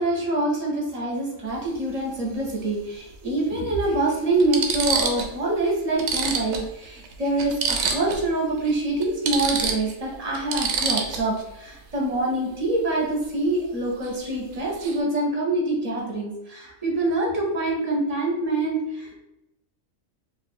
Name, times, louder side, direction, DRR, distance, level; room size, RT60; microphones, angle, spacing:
voice 1, 0.0-19.2, right 2 dB, 35° right, -2 dB, 0.8 m, -25 dB
sound 1, 1.5-1.7 3.1-3.2 3.9-4.0 4.4-5.3 5.7-5.8 6.0-8.3 8.6-8.7 9.0-11.4 14.0-14.2 14.5-15.0, right 5 dB, 65° right, 0.8 m, -27 dB
2.8 x 2.5 x 4.3 m, 0.89 s
omnidirectional pair, 1.4 m